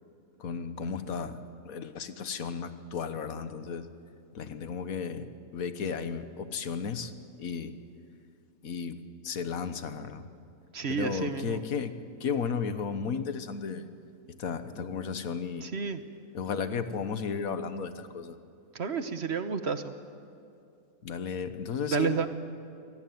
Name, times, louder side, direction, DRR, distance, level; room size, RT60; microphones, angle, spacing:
voice 1, 0.4-1.4 1.6-3.8 4.3-7.1 7.4-7.7 8.6-9.0 9.2-10.2 10.9-11.9 12.2-13.8 14.4-15.7 16.3-18.4 21.0-22.3, left 6 dB, 65° left, 10 dB, 1.6 m, -34 dB
voice 2, 10.7-11.6 15.6-16.0 18.7-19.9 21.9-22.3, right 6 dB, 45° right, 10 dB, 1.2 m, -30 dB
24.5 x 18.5 x 9.4 m, 2.5 s
omnidirectional pair, 1.6 m